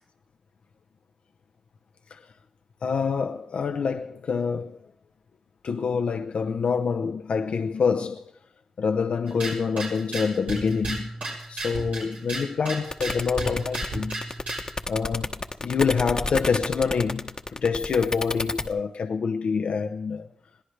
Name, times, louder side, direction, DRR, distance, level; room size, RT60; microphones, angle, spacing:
voice 1, 2.8-4.8 5.6-8.3 8.8-11.1 11.5-14.2 14.9-15.3 15.6-20.3, left 5 dB, 80° left, 0.7 m, -26 dB
sound 1, 9.3-14.7, right 2 dB, 85° right, 6.3 m, -34 dB
sound 2, 12.9-18.7, left 3 dB, 40° left, 1.1 m, -30 dB
21.5 x 17.0 x 3.3 m
cardioid pair, 55°, 2 cm